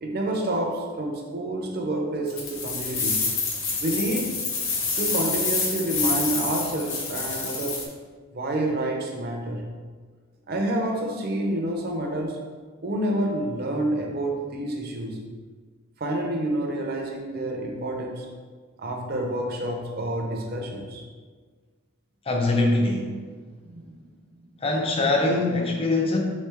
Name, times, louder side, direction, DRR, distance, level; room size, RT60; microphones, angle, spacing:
voice 1, 0.0-3.3 3.8-4.4 5.0-7.8 8.3-9.7 10.5-12.4 12.8-15.2 16.0-18.3 18.8-21.0 23.6-24.0, right 1 dB, 45° right, 2 dB, 0.5 m, -28 dB
sound 1, 2.3-7.8, left 4 dB, 65° left, 0.9 m, -27 dB
voice 2, 22.3-23.2 24.6-26.2, left 2 dB, 25° left, 1 dB, 0.4 m, -23 dB
3.5 x 3.2 x 3.4 m, 1.5 s
head